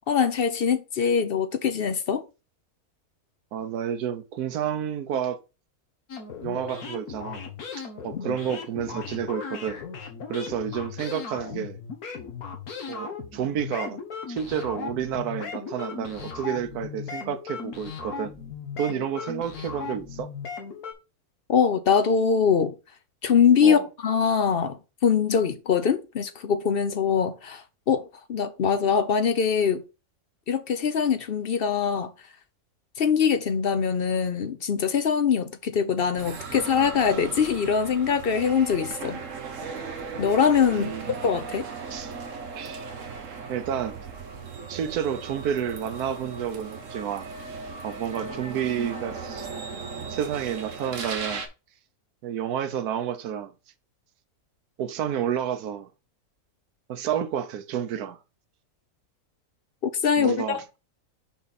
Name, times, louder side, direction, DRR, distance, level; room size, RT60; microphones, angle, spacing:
voice 1, 0.1-2.2 8.3-8.4 21.5-22.7 23.2-29.8 30.5-32.1 33.0-39.2 40.2-40.9 41.2-41.7 59.8-60.6, left 6 dB, 55° left, 0.6 m, -23 dB
voice 2, 3.5-5.4 6.4-7.5 8.0-9.8 10.3-11.8 12.9-14.0 14.3-18.3 18.8-20.3 23.6-23.9 40.7-41.2 41.9-42.2 42.5-42.9 43.5-44.0 44.7-47.3 47.8-49.5 50.0-51.4 52.2-53.5 54.8-55.9 56.9-58.2 60.2-60.6, right 9 dB, 85° right, 1.3 m, -30 dB
sound 1, 6.1-20.9, left 5 dB, 75° left, 1.9 m, -37 dB
sound 2, 36.1-51.5, right 5 dB, 60° right, 1.5 m, -37 dB
6.1 x 5.4 x 4.1 m
omnidirectional pair, 1.6 m